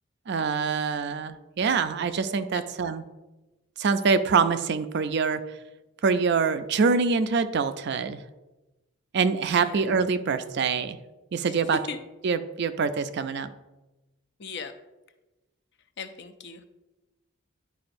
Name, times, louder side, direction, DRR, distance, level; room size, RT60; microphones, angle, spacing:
voice 1, 0.3-3.0 3.8-5.4 6.0-8.2 9.1-11.0 11.3-11.8 12.2-13.5, right 5 dB, 50° right, 11 dB, 0.4 m, -25 dB
voice 2, 14.4-14.7 16.0-16.6, left 5 dB, 50° left, 8 dB, 0.5 m, -37 dB
10.5 x 4.8 x 2.6 m, 1.1 s
head